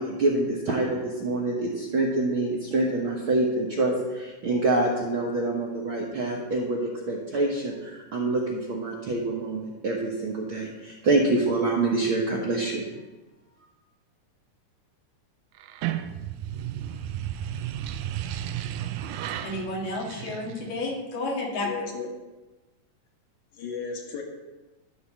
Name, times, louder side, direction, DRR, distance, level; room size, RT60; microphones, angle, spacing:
voice 1, 0.0-12.8, right 2 dB, 65° right, -3 dB, 1.3 m, -26 dB
sound 1, 15.6-20.9, right 11 dB, 85° right, 1.6 m, -33 dB
voice 2, 19.4-21.7, left 2 dB, 80° left, -2 dB, 3.6 m, -31 dB
voice 3, 21.6-22.1 23.5-24.2, left 5 dB, 45° left, 0 dB, 1.7 m, -34 dB
12.5 x 4.2 x 7.3 m, 1.2 s
omnidirectional pair, 3.9 m